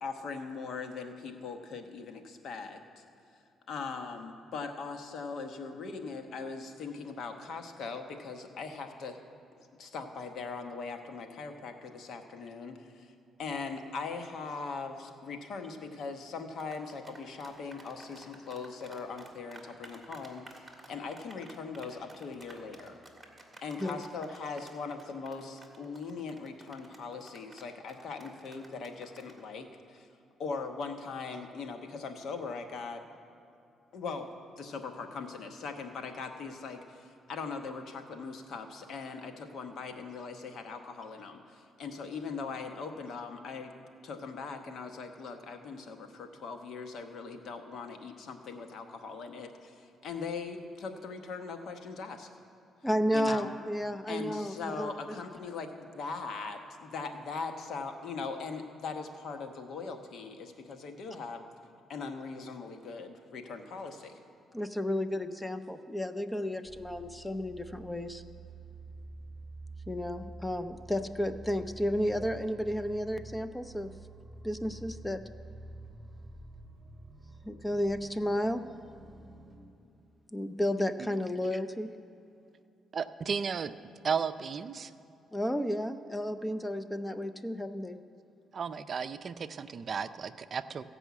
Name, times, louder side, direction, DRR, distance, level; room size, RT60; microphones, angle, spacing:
voice 1, 0.0-3.0 3.7-9.2 9.8-13.1 13.4-23.0 23.6-30.1 30.4-33.0 33.9-43.7 44.0-52.3 53.1-53.5 54.1-61.4 61.9-64.2, left 4 dB, 70° left, 5 dB, 1.1 m, -40 dB
sound 1, 16.6-29.4, right 2 dB, 10° right, 2.0 m, -52 dB
voice 2, 52.8-54.9 64.5-68.2 69.9-73.9 74.4-75.2 77.4-78.7 80.3-81.9 85.3-88.0, equal, 10° left, 11 dB, 0.5 m, -32 dB
sound 2, 66.6-79.7, right 2 dB, 30° right, 1.2 m, -48 dB
voice 3, 82.9-83.7 84.0-84.9 88.5-90.8, right 6 dB, 50° right, 11 dB, 0.4 m, -34 dB
15.5 x 5.5 x 8.3 m, 2.7 s
cardioid pair, 90°, 0 cm